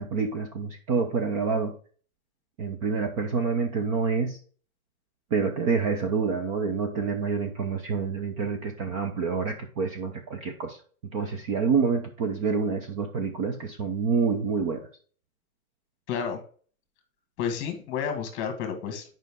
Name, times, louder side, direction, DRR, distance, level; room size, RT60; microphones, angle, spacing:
voice 1, 0.0-1.7 2.6-4.4 5.3-10.8 11.1-14.9, right 5 dB, 25° right, 5 dB, 0.6 m, -27 dB
voice 2, 16.1-16.4 17.4-19.0, left 7 dB, 30° left, 6 dB, 1.6 m, -30 dB
7.7 x 5.4 x 3.6 m, 0.43 s
hypercardioid pair, 155°, 41 cm